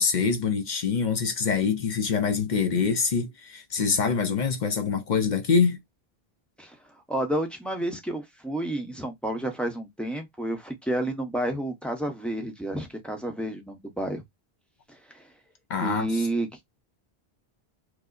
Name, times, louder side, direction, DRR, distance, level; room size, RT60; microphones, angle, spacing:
voice 1, 0.0-5.8 15.7-16.3, left 5 dB, 55° left, 0.6 m, -25 dB
voice 2, 7.1-14.2 14.9-15.3 15.8-16.5, right 1 dB, ahead, 0.6 m, -30 dB
4.8 x 2.0 x 2.4 m
omnidirectional pair, 1.1 m